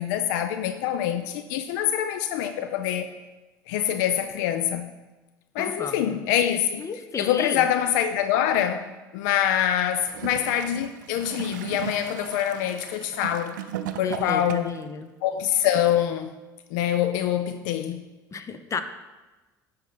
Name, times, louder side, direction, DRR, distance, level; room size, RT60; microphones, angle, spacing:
voice 1, 0.0-3.1 3.7-5.0 5.5-6.9 7.2-8.9 9.1-13.6 14.0-14.8 15.2-16.3 16.7-18.1, left 10 dB, 70° left, 0.5 m, -25 dB
voice 2, 5.6-6.2 6.8-7.6 14.0-15.1 18.3-18.8, left 5 dB, 30° left, 0.7 m, -33 dB
Gurgling / Toilet flush, 10.0-14.9 15.7-15.8, right 11 dB, 80° right, 0.4 m, -37 dB
9.2 x 3.9 x 5.2 m
hypercardioid pair, 70°, 10 cm